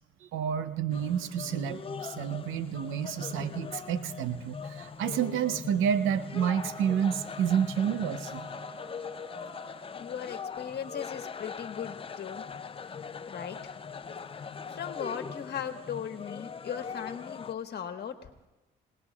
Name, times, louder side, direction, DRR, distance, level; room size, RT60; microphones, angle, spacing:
voice 1, 0.2-8.5, right 8 dB, 90° right, 12 dB, 0.7 m, -29 dB
sound 1, 0.9-17.5, left 6 dB, 25° left, 0.5 m, -41 dB
Wind instrument woodwind instrument, 6.3-9.9, right 1 dB, 5° right, 1.2 m, -48 dB
voice 2, 10.0-12.4 13.3-13.7 14.7-18.3, left 8 dB, 55° left, 6 dB, 1.4 m, -38 dB
26.5 x 19.0 x 2.4 m, 1.0 s
cardioid pair, 90°, 20 cm